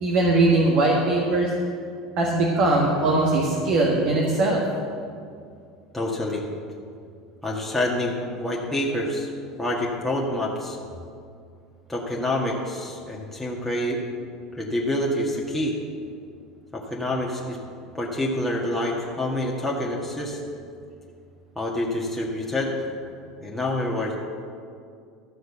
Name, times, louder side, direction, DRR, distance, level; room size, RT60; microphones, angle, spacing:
voice 1, 0.0-1.5 2.2-4.6, right 2 dB, 50° right, -2 dB, 1.6 m, -20 dB
voice 2, 5.9-6.5 7.4-9.3 9.6-10.8 11.9-14.0 14.6-15.8 16.7-17.6 17.9-20.4 21.6-22.7 23.4-24.1, left 1 dB, 5° left, -4 dB, 1.8 m, -27 dB
13.0 x 6.4 x 7.0 m, 2.3 s
hypercardioid pair, 75°, 3 cm